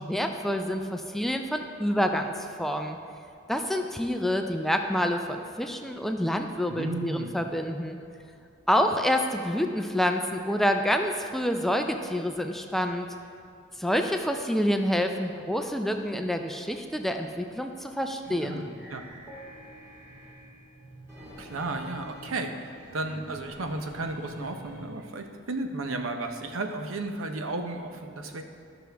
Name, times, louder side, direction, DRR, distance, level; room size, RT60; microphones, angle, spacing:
voice 1, 0.0-3.0 3.5-8.0 8.7-13.1 13.8-18.7, equal, ahead, 5 dB, 0.4 m, -27 dB
voice 2, 6.7-7.3 18.4-19.0 21.4-28.4, right 2 dB, 85° right, 5 dB, 0.7 m, -34 dB
sound 1, 18.2-25.1, equal, 15° right, 1.8 m, -47 dB
13.0 x 6.2 x 3.4 m, 2.4 s
head